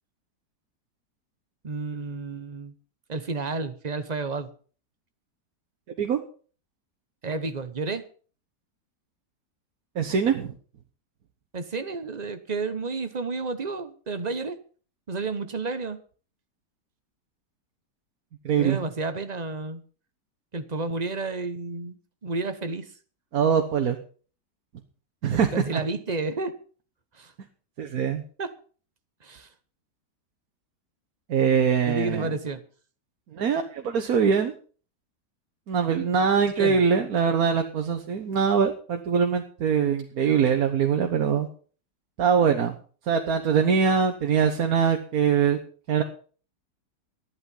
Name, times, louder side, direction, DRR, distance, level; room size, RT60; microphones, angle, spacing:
voice 1, 1.6-2.7 3.1-4.5 7.2-8.1 11.5-14.6 15.1-16.0 18.6-19.8 20.5-22.0 22.2-22.9 25.3-26.6 27.1-27.3 28.4-28.5 29.2-29.5 31.9-32.6 36.6-36.8, right 3 dB, 30° right, 9 dB, 0.9 m, -31 dB
voice 2, 10.0-10.5 18.4-18.8 23.3-24.0 25.2-25.8 27.8-28.2 31.3-32.3 33.3-34.5 35.7-41.5 42.2-42.7 43.1-45.6 45.9-46.0, right 6 dB, 60° right, 5 dB, 1.5 m, -23 dB
13.0 x 11.0 x 5.5 m, 0.41 s
omnidirectional pair, 1.8 m